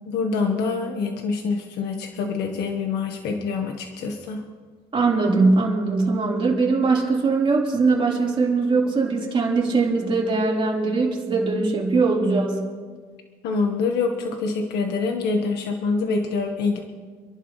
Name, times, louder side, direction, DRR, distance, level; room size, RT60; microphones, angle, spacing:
voice 1, 0.1-4.4 13.4-16.8, left 4 dB, 75° left, 3 dB, 1.5 m, -25 dB
voice 2, 4.9-12.6, right 3 dB, 30° right, -3 dB, 4.0 m, -21 dB
28.0 x 11.0 x 3.3 m, 1.5 s
cardioid pair, 110°, 17 cm